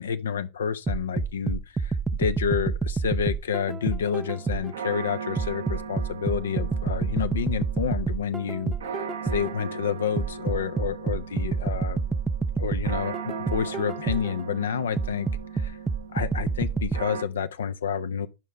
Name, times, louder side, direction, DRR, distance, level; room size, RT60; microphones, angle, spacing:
voice 1, 0.0-12.0 12.6-15.3 15.5-15.8 16.1-18.3, left 7 dB, 70° left, 0.5 m, -29 dB
sound 1, 0.9-4.8 5.4-9.6 10.2-14.4 15.0-17.0, right 4 dB, 15° right, 0.4 m, -28 dB
sound 2, 4.0-17.2, right 6 dB, 70° right, 0.7 m, -38 dB
11.0 x 5.5 x 4.2 m
figure-of-eight pair, 95°, 0 cm